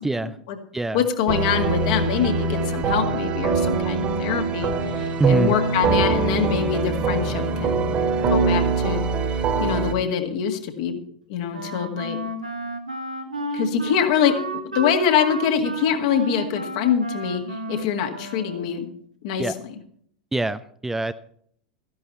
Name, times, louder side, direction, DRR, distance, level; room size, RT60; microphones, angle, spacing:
voice 1, 0.0-0.4 0.7-1.1 5.2-5.5 19.4-19.5 20.3-21.1, right 3 dB, 5° right, 13 dB, 0.4 m, -23 dB
voice 2, 0.9-7.9 8.3-9.0 9.6-11.0 11.3-12.2 13.5-14.4 14.6-18.9 19.2-19.4, left 8 dB, 55° left, 5 dB, 1.9 m, -24 dB
sound 1, 1.3-9.9, right 4 dB, 35° right, 1.8 m, -23 dB
Wind instrument woodwind instrument, 11.5-18.9, right 1 dB, 85° right, 1.5 m, -32 dB
14.0 x 10.5 x 4.3 m, 0.63 s
figure-of-eight pair, 85°, 4 cm